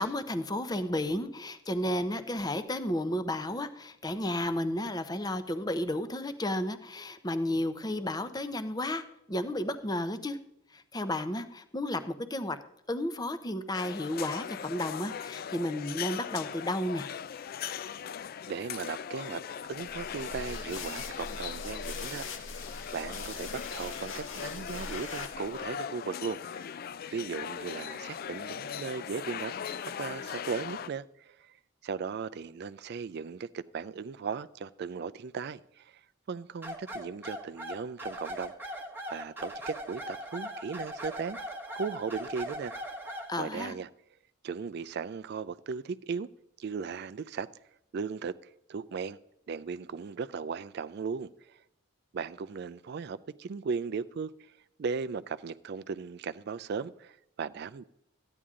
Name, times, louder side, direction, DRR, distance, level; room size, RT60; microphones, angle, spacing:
voice 1, 0.0-10.4 10.7-12.6 12.9-17.1 43.3-43.7, left 1 dB, 20° left, 0.7 m, -32 dB
sound 1, 13.7-30.9, left 8 dB, 45° left, 0.3 m, -39 dB
voice 2, 18.5-19.4 19.7-22.5 22.9-26.7 27.1-29.5 30.0-31.6 31.8-36.0 36.3-41.4 41.7-42.7 43.4-43.9 44.4-46.3 46.6-47.5 47.9-49.2 49.5-51.6 52.1-54.3 54.8-57.8, right 5 dB, 50° right, 0.3 m, -37 dB
sound 2, 19.8-25.7, left 4 dB, 70° left, 1.1 m, -42 dB
sound 3, 36.6-43.3, equal, 10° right, 1.1 m, -39 dB
14.0 x 9.8 x 3.7 m
head